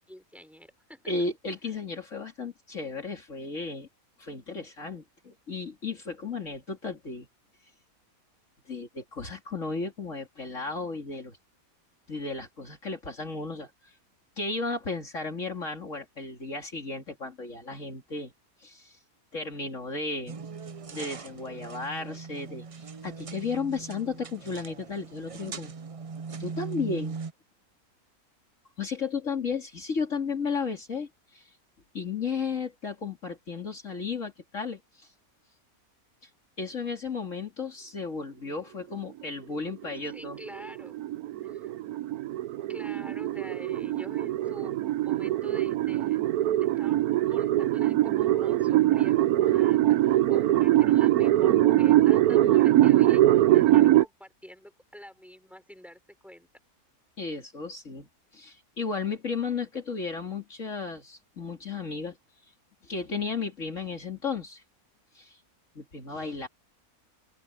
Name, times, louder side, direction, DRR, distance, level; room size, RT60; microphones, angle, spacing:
voice 1, 0.1-1.1 40.0-41.1 41.4-41.7 42.7-46.2 46.6-56.5, equal, ahead, 4.9 m, -47 dB
voice 2, 1.1-3.9 4.2-7.3 8.7-11.4 12.1-13.9 14.4-18.3 18.6-19.0 19.3-20.4 20.9-25.7 26.4-27.2 28.8-31.5 31.9-35.1 36.2-36.3 36.6-40.4 57.2-62.2 62.8-64.6 65.1-65.4 65.7-66.5, left 4 dB, 55° left, 3.1 m, -34 dB
sound 1, 20.3-27.3, right 5 dB, 45° right, 0.4 m, -40 dB
sound 2, 39.7-54.0, right 14 dB, 85° right, 1.2 m, -22 dB
omnidirectional pair, 1.5 m